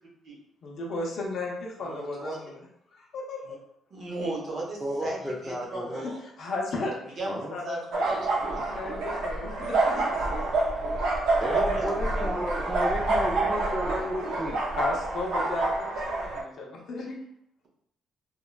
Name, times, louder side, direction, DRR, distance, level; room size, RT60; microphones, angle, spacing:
voice 1, 0.6-2.7 2.9-3.6 5.9-7.0 7.5-10.1 12.8-12.9 14.7-17.2, left 2 dB, 50° left, -1 dB, 0.6 m, -34 dB
voice 2, 1.8-2.4 3.5-3.6 3.9-6.2 7.0-7.4 7.6-9.0 11.2-11.8, right 2 dB, 50° right, -2 dB, 0.7 m, -36 dB
voice 3, 4.8-6.0 7.3-7.5 11.4-14.6, equal, ahead, -4 dB, 0.3 m, -32 dB
sound 1, 7.9-16.4, right 2 dB, 85° right, 0.5 m, -27 dB
3.1 x 2.2 x 2.3 m, 0.72 s
cardioid pair, 155°, 0 cm